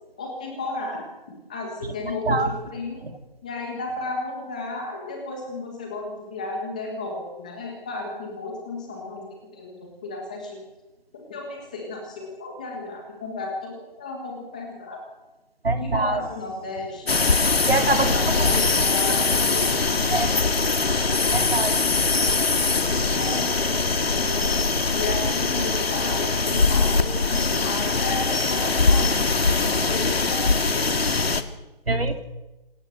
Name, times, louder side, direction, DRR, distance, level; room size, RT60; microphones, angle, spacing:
voice 1, 0.2-1.0 1.5-3.0 3.4-9.3 9.5-10.6 11.1-15.0 15.8-17.1 17.7-19.7 23.1-24.6 24.9-30.8, left 3 dB, 10° left, 1 dB, 1.6 m, -33 dB
voice 2, 15.6-16.2 17.7-18.1 20.1-20.3 21.3-21.7 31.9-32.2, right 2 dB, 80° right, 6 dB, 3.5 m, -23 dB
sound 1, 17.1-31.4, left 4 dB, 85° left, 2.4 m, -22 dB
27.0 x 15.0 x 7.9 m, 1.1 s
hypercardioid pair, 180°, 29 cm